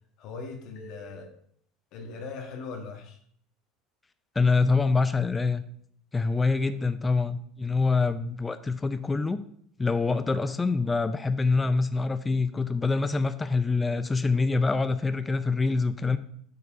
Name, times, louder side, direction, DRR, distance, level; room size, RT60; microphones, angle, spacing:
voice 1, 0.2-1.4 1.9-3.2, left 4 dB, 55° left, 3 dB, 1.4 m, -39 dB
voice 2, 4.4-5.6 6.1-9.4 9.8-16.2, left 4 dB, 20° left, 11 dB, 0.5 m, -25 dB
8.1 x 4.7 x 5.7 m, 0.63 s
hypercardioid pair, 70°, 0 cm